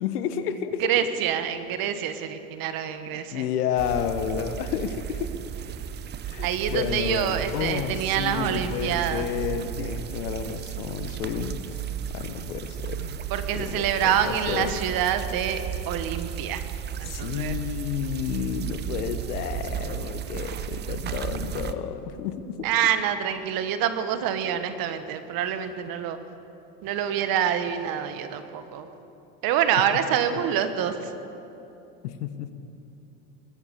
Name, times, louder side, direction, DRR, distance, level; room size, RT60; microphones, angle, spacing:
voice 1, 0.0-0.9 3.1-5.3 6.2-13.2 13.6-14.8 17.0-22.7 32.0-32.5, left 8 dB, 85° left, 11 dB, 1.1 m, -31 dB
voice 2, 0.8-3.4 6.4-9.3 13.3-16.6 17.0-17.5 22.6-26.2 26.8-28.9 29.4-31.1, right 9 dB, 50° right, 9 dB, 1.3 m, -26 dB
sound 1, 3.8-21.7, right 9 dB, 25° right, 0.5 m, -34 dB
21.0 x 9.1 x 6.8 m, 2.9 s
supercardioid pair, 110°, 45 cm